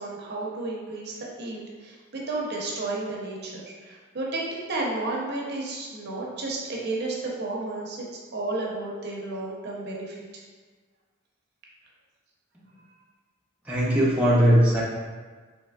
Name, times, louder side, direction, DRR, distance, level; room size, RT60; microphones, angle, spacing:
voice 1, 0.0-10.2, right 2 dB, 55° right, -3 dB, 0.6 m, -32 dB
voice 2, 13.7-14.8, equal, 5° right, -7 dB, 0.4 m, -19 dB
3.4 x 2.9 x 2.2 m, 1.4 s
head